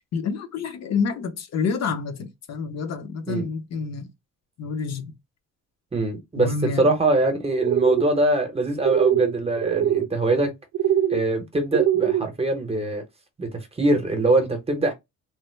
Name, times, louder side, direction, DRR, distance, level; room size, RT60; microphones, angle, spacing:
voice 1, 0.1-4.1 4.6-5.1 6.4-6.9, left 5 dB, 55° left, 0.6 m, -28 dB
voice 2, 5.9-10.5 11.1-13.0 13.4-14.9, right 2 dB, 20° right, 0.8 m, -23 dB
sound 1, 7.6-8.1 8.8-9.3 9.6-10.1 10.7-11.2 11.7-12.2, right 11 dB, 55° right, 0.5 m, -22 dB
3.2 x 2.0 x 3.1 m
cardioid pair, 140°, 31 cm